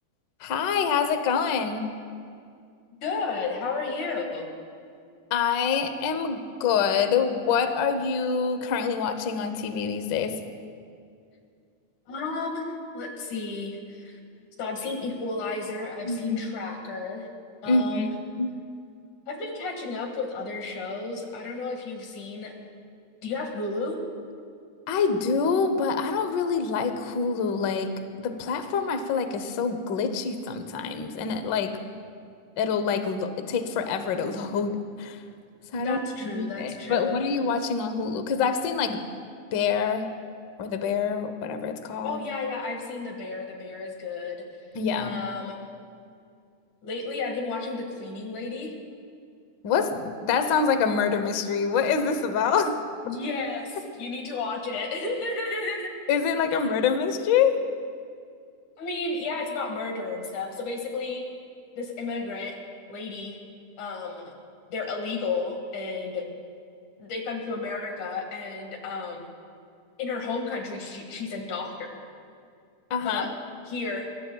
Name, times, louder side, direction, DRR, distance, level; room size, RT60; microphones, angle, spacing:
voice 1, 0.4-1.9 5.3-10.4 16.0-16.4 17.7-18.1 18.4-18.5 24.9-27.9 28.2-31.8 32.6-35.2 35.7-39.0 39.5-40.1 40.6-42.2 44.7-45.2 49.6-52.7 56.1-57.6 72.9-73.3, left 6 dB, 70° left, 8 dB, 1.1 m, -26 dB
voice 2, 3.0-4.5 12.1-12.7 12.9-14.2 14.6-17.3 17.6-18.1 19.3-22.5 23.2-24.0 35.8-37.2 42.0-44.4 45.0-45.6 46.8-48.7 53.0-55.9 58.8-61.2 61.7-62.6 62.9-63.4 63.8-64.3 64.7-66.2 67.0-69.3 70.0-71.9 73.0-73.4 73.6-74.1, left 3 dB, 85° left, 2 dB, 3.3 m, -32 dB
24.5 x 21.5 x 2.3 m, 2.3 s
omnidirectional pair, 3.3 m